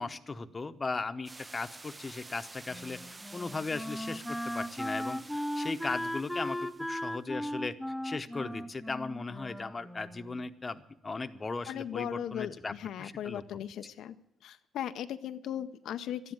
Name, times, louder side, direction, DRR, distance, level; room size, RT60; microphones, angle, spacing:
voice 1, 0.0-3.0 3.3-7.8 8.0-13.4, left 3 dB, 30° left, 10 dB, 0.9 m, -37 dB
sound 1, 1.3-7.1, right 2 dB, 20° right, 0.5 m, -50 dB
Wind instrument woodwind instrument, 2.7-10.5, equal, ahead, 0.8 m, -37 dB
voice 2, 11.7-14.1 14.4-16.3, left 10 dB, 75° left, 9 dB, 0.5 m, -37 dB
12.5 x 10.5 x 9.3 m, 0.80 s
cardioid pair, 90°, 0 cm